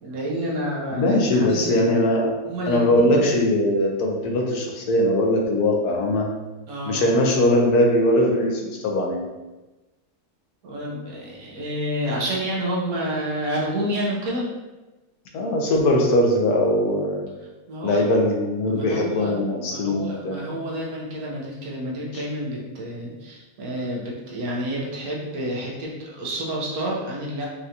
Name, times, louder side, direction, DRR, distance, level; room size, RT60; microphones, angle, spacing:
voice 1, 0.0-1.9 2.4-3.3 6.7-7.1 10.6-14.5 17.7-18.0 18.7-19.3 19.6-27.5, equal, 70° right, -4 dB, 1.4 m, -29 dB
voice 2, 0.9-2.3 2.7-6.3 6.9-9.2 15.3-17.2 17.8-20.4 22.1-22.2, left 1 dB, 75° left, 0 dB, 1.2 m, -20 dB
5.4 x 2.5 x 2.8 m, 1.1 s
omnidirectional pair, 1.6 m